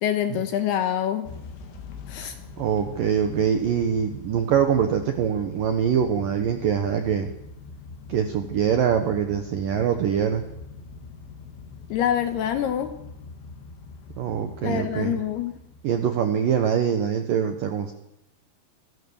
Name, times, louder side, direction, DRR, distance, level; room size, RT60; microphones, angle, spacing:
voice 1, 0.0-1.3 2.1-2.4 11.9-12.9 14.6-15.5, left 10 dB, 75° left, 9 dB, 2.6 m, -25 dB
Motor vehicle (road) / Engine starting / Accelerating revving vroom, 1.3-16.2, left 4 dB, 90° left, 5.2 m, -43 dB
voice 2, 2.6-7.3 8.1-10.5 14.2-15.2 15.8-17.9, right 8 dB, 70° right, 7 dB, 2.1 m, -24 dB
26.0 x 16.0 x 7.2 m, 0.83 s
omnidirectional pair, 5.7 m